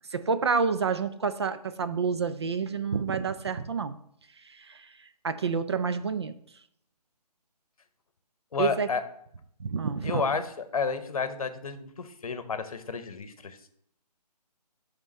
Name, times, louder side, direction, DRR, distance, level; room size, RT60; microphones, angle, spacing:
voice 1, 0.1-4.0 4.4-4.9 5.2-6.3 8.6-8.9 9.6-10.3, right 5 dB, 40° right, 11 dB, 0.4 m, -28 dB
voice 2, 8.5-9.0 10.0-13.7, left 5 dB, 55° left, 10 dB, 0.8 m, -31 dB
7.1 x 3.6 x 6.4 m, 0.70 s
figure-of-eight pair, 150°, 21 cm